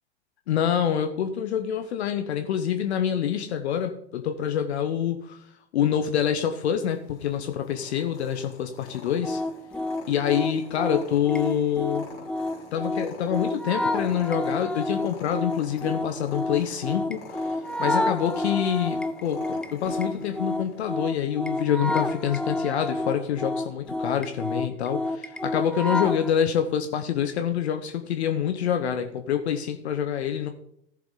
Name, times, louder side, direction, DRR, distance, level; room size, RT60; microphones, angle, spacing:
voice 1, 0.5-5.4 5.7-9.4 10.1-12.1 12.7-17.2 17.8-30.5, left 9 dB, 65° left, 8 dB, 1.0 m, -26 dB
Purr, 6.9-20.8, left 4 dB, 45° left, 4.4 m, -46 dB
sound 1, 9.2-26.3, left 2 dB, 5° left, 0.4 m, -29 dB
14.5 x 7.1 x 3.8 m, 0.72 s
figure-of-eight pair, 90°, 35 cm